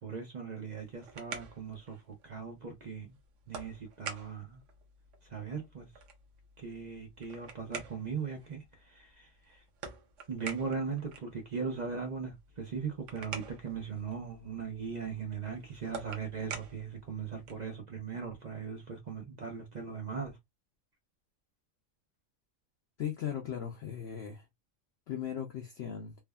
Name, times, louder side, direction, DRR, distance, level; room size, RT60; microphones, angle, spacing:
voice 1, 0.0-3.2 3.5-4.6 5.2-5.9 6.6-9.6 10.3-20.4, right 5 dB, 50° right, 0.5 m, -39 dB
sound 1, 0.7-17.7, right 5 dB, 70° right, 1.0 m, -48 dB
voice 2, 23.0-24.5 25.1-26.2, left 9 dB, 65° left, 0.7 m, -37 dB
3.4 x 2.0 x 2.2 m
omnidirectional pair, 1.4 m